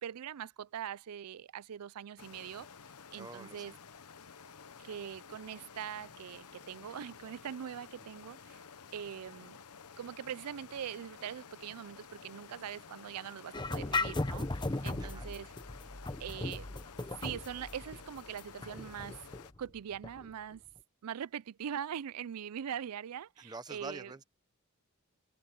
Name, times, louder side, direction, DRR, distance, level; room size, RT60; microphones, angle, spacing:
voice 1, 0.0-2.7 3.1-3.7 4.8-8.6 8.9-9.6 10.0-15.5 16.2-16.7 17.2-19.2 19.6-20.6 21.0-24.1, right 9 dB, 85° right, 0.4 m, -42 dB
sound 1, 2.2-19.5, left 6 dB, 85° left, 1.0 m, -53 dB
voice 2, 3.2-3.8 8.0-8.1 15.0-15.3 23.4-24.2, right 3 dB, 20° right, 0.9 m, -46 dB
sound 2, 13.5-20.3, left 2 dB, 20° left, 0.9 m, -37 dB
head